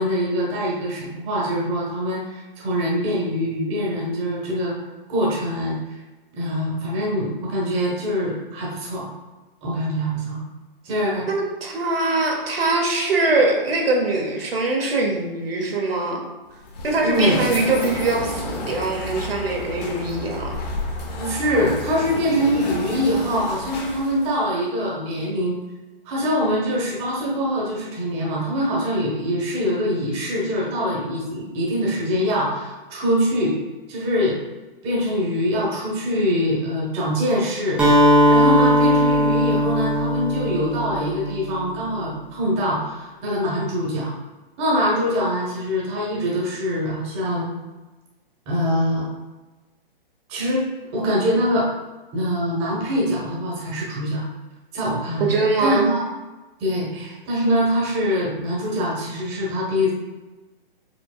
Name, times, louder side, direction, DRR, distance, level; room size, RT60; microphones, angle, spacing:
voice 1, 0.0-4.8 5.1-6.0 6.4-9.1 9.6-10.4 10.8-11.3 17.0-17.4 21.2-25.6 26.0-33.5 33.9-34.4 34.8-37.8 38.3-44.1 44.6-47.5 48.5-49.1 50.3-51.7 52.1-54.2 54.7-55.3 55.6-56.1 56.6-59.9, equal, 20° right, -5 dB, 1.0 m, -23 dB
voice 2, 11.6-16.2 16.8-20.6 55.2-55.9, right 2 dB, 75° right, 0 dB, 1.1 m, -22 dB
sound 1, 16.5-24.4, left 2 dB, 45° left, 0.9 m, -31 dB
Acoustic guitar, 37.8-41.6, equal, 5° right, 0.5 m, -18 dB
5.0 x 3.4 x 2.3 m, 1.2 s
hypercardioid pair, 140°, 30 cm